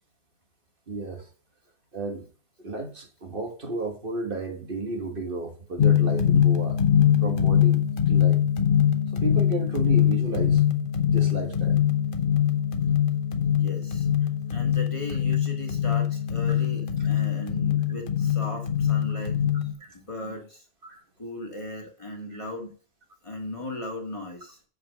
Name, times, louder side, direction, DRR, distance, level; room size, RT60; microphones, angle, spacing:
voice 1, 0.9-1.3 1.9-2.3 2.6-6.8 7.2-8.4 9.2-10.6 11.1-11.8 19.8-19.9 20.8-21.0, right 3 dB, 55° right, 1.5 m, -33 dB
sound 1, 5.8-19.7, left 9 dB, 55° left, 1.0 m, -23 dB
voice 2, 13.5-14.1 14.5-19.7 19.9-20.6 21.2-22.7 23.2-24.6, left 1 dB, 30° left, 1.8 m, -37 dB
6.7 x 5.0 x 6.3 m
omnidirectional pair, 1.1 m